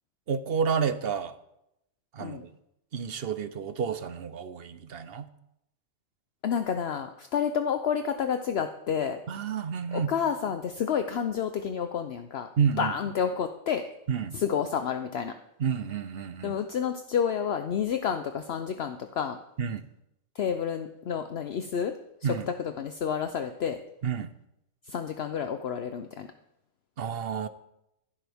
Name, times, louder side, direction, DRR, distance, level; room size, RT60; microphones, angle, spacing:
voice 1, 0.3-1.4 2.1-2.5 2.9-5.3 9.3-10.1 12.6-12.9 14.1-14.4 15.6-16.6 19.6-19.9 22.2-22.5 24.0-24.3 27.0-27.5, right 7 dB, 55° right, 12 dB, 0.9 m, -30 dB
voice 2, 6.4-9.2 9.9-12.5 12.8-13.9 14.3-15.3 16.4-19.4 20.4-22.0 22.2-23.8 24.9-26.3, left 7 dB, 60° left, 7 dB, 0.9 m, -30 dB
15.5 x 12.0 x 3.5 m, 0.84 s
omnidirectional pair, 1.3 m